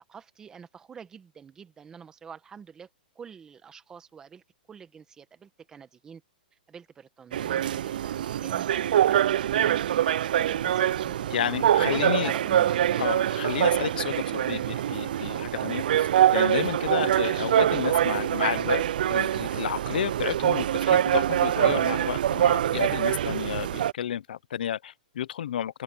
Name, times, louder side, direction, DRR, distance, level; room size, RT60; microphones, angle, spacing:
voice 1, 0.0-2.9 3.1-4.4 4.7-6.2 6.7-10.0 10.3-13.1, right 7 dB, 10° right, 1.6 m, -46 dB
sound 1, 7.3-23.9, right 11 dB, 65° right, 0.5 m, -24 dB
voice 2, 11.3-12.3 13.0-25.8, left 10 dB, 70° left, 0.8 m, -31 dB
open air
hypercardioid pair, 160°, 5 cm